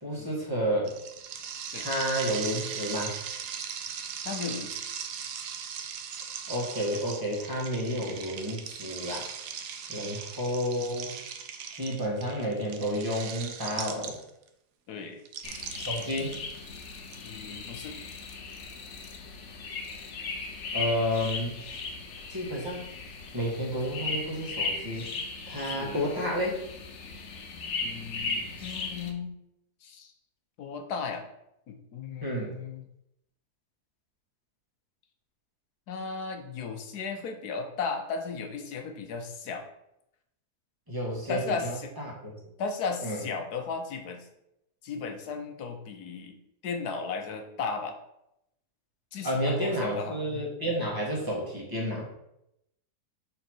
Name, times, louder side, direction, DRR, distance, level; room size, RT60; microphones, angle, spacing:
voice 1, 0.0-1.0 1.8-3.2 6.5-9.2 9.9-11.1 11.8-14.2 15.8-16.4 20.7-21.5 22.3-22.9 23.3-25.0 25.5-26.6 32.2-32.5 40.9-42.3 43.0-43.2 49.2-52.1, equal, 15° right, -3 dB, 1.7 m, -31 dB
sound 1, 0.9-14.5 15.3-17.1, right 7 dB, 80° right, 1.3 m, -39 dB
voice 2, 4.2-4.8 10.0-10.2 14.9-15.2 17.2-18.0 25.7-26.3 27.8-29.4 29.8-30.1 30.6-31.3 31.7-32.8 35.9-39.7 41.3-41.9 42.6-44.3 44.8-46.4 46.6-48.0 49.1-50.2, left 5 dB, 70° left, 5 dB, 1.4 m, -35 dB
sound 2, 15.4-29.1, left 3 dB, 50° left, 1.0 m, -37 dB
6.7 x 4.4 x 4.6 m, 0.82 s
omnidirectional pair, 1.7 m